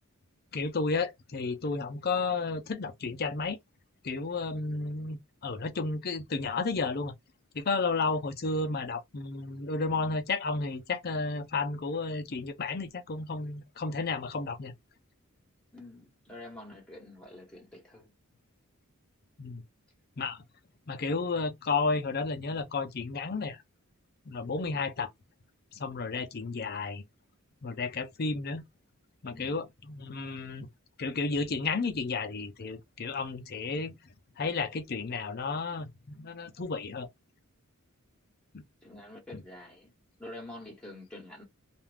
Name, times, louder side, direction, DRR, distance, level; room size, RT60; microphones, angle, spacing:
voice 1, 0.5-3.6 4.0-7.1 7.5-14.7 19.4-19.6 20.2-20.4 20.9-23.6 24.3-25.1 25.7-27.0 27.6-28.6 29.2-30.7 31.0-33.9 34.4-37.1 38.5-38.6 39.3-39.4, left 4 dB, 45° left, 0.6 m, -32 dB
voice 2, 15.7-18.1 29.3-29.6 38.8-39.9 40.2-41.4, left 1 dB, 5° left, 1.1 m, -47 dB
2.5 x 2.3 x 3.3 m
head